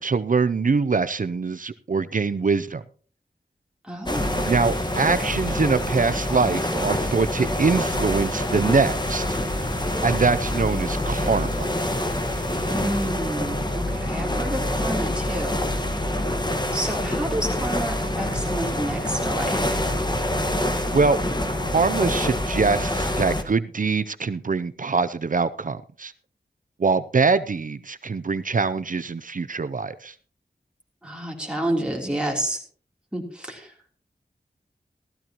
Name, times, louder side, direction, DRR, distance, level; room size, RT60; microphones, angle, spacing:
voice 1, 0.0-2.8 4.5-9.2 10.0-11.7 20.9-21.2 21.6-26.1 26.8-30.1, right 4 dB, 55° right, 13 dB, 0.5 m, -23 dB
voice 2, 3.8-4.5 12.7-15.6 16.7-19.7 31.0-32.6 33.1-33.7, right 1 dB, 5° right, 0 dB, 3.2 m, -29 dB
sound 1, 4.1-13.1, left 2 dB, 50° left, 1.7 m, -42 dB
sound 2, 4.1-23.4, left 1 dB, 25° left, 1.4 m, -26 dB
15.5 x 13.5 x 2.9 m, 0.41 s
wide cardioid pair, 55°, 17 cm